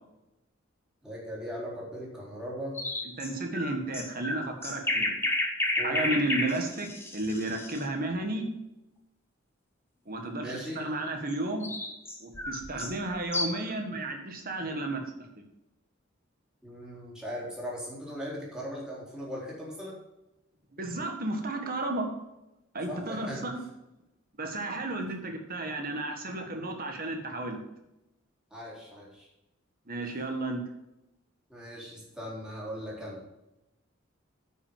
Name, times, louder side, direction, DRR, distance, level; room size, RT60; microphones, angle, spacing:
voice 1, 1.0-2.8 5.8-6.0 10.4-10.8 16.6-20.0 22.9-23.4 28.5-29.3 31.5-33.2, equal, 5° right, -6 dB, 4.0 m, -39 dB
sound 1, 2.7-7.8 11.3-13.7, left 2 dB, 10° left, 1.5 m, -32 dB
voice 2, 3.2-5.2 5.8-8.5 10.0-11.7 12.2-15.0 20.7-22.1 22.7-23.6 24.4-27.6 29.9-30.6, right 2 dB, 45° right, 4 dB, 1.7 m, -33 dB
9.5 x 6.1 x 7.4 m, 0.92 s
head